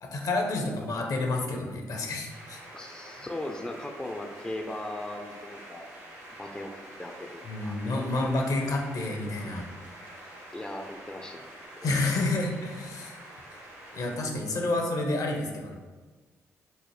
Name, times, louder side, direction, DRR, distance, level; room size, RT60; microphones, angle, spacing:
voice 1, 0.0-2.6 3.2-3.3 7.4-9.7 11.8-13.2 13.9-15.8, left 2 dB, 55° left, 1 dB, 0.6 m, -29 dB
sound 1, 2.3-14.2, right 1 dB, 75° right, 1.1 m, -47 dB
voice 2, 2.7-5.9 6.4-7.8 10.5-11.5, left 1 dB, 10° left, 3 dB, 0.4 m, -38 dB
4.1 x 2.0 x 3.1 m, 1.3 s
hypercardioid pair, 40°, 7 cm